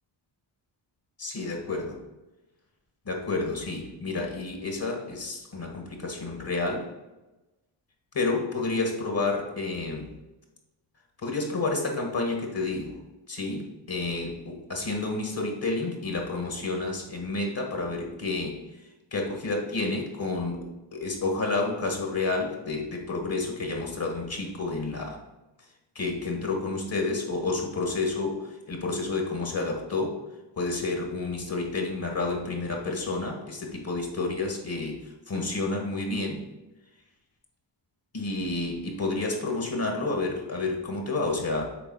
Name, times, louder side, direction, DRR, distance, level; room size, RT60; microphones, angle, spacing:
voice 1, 1.2-2.0 3.0-6.9 8.1-10.1 11.2-13.0 13.3-18.6 19.1-20.6 20.9-25.2 25.9-30.2 30.6-36.4 38.1-41.6, left 3 dB, 45° left, 1 dB, 1.7 m, -30 dB
6.9 x 4.2 x 5.5 m, 1.1 s
cardioid pair, 60°, 48 cm